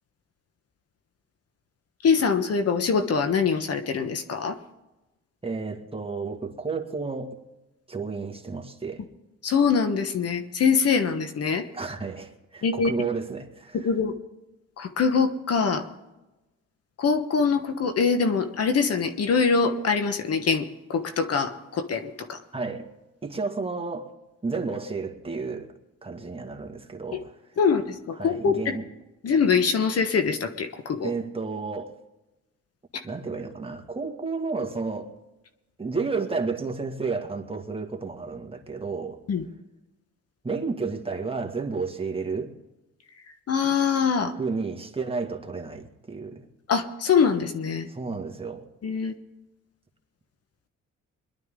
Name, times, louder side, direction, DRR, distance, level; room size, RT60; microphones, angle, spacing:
voice 1, 2.0-4.6 9.4-11.6 12.6-12.9 13.7-14.1 14.8-15.9 17.0-22.4 27.1-27.2 27.6-28.7 29.2-31.1 32.9-33.0 39.3-39.4 43.5-44.3 46.7-47.9 48.8-49.1, left 5 dB, 55° left, 1.3 m, -24 dB
voice 2, 5.4-7.4 7.9-9.0 11.7-13.9 22.5-22.9 23.2-24.1 24.4-25.7 26.0-27.3 28.2-28.8 31.0-31.9 33.0-35.1 35.8-39.2 40.4-42.5 44.4-46.4 47.9-48.6, right 4 dB, 20° right, 1.9 m, -31 dB
22.0 x 11.5 x 3.8 m
cardioid pair, 90°, 30 cm